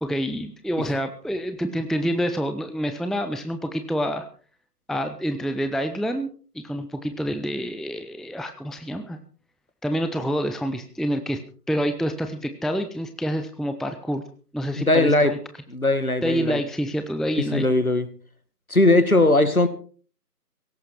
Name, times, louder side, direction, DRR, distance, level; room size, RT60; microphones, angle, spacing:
voice 1, 0.0-4.3 4.9-6.3 6.6-9.2 9.8-11.4 11.7-14.2 14.5-15.4 16.2-17.6, equal, ahead, 8 dB, 0.7 m, -27 dB
voice 2, 14.7-15.3 15.7-16.6 17.4-18.1 18.7-19.7, left 2 dB, 60° left, 11 dB, 2.1 m, -19 dB
17.0 x 14.0 x 4.5 m, 0.41 s
figure-of-eight pair, 180°, 49 cm